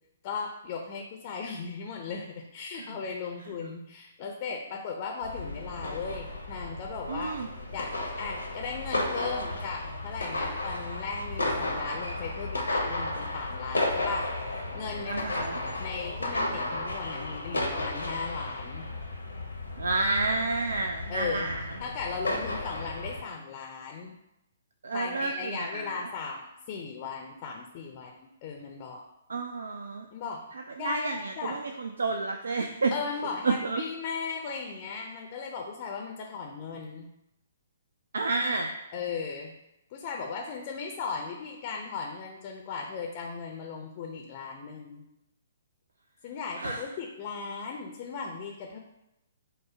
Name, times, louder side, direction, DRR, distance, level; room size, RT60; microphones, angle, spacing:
voice 1, 0.2-7.3 7.7-14.3 14.7-15.3 15.8-18.9 21.1-21.5 21.8-24.1 24.9-29.0 30.1-30.4 30.8-31.6 32.9-37.1 38.9-39.5 39.9-45.0 46.2-48.8, left 5 dB, 35° left, 1 dB, 0.5 m, -37 dB
sound 1, 5.2-23.2, left 2 dB, 75° left, 0.7 m, -34 dB
voice 2, 7.1-7.5 15.1-15.6 19.8-21.6 24.8-26.1 29.3-30.1 30.8-32.9 33.4-33.8 38.1-38.7 46.6-46.8, right 3 dB, 65° right, 4 dB, 0.3 m, -30 dB
5.0 x 2.0 x 4.4 m, 0.88 s
figure-of-eight pair, 125°, 0 cm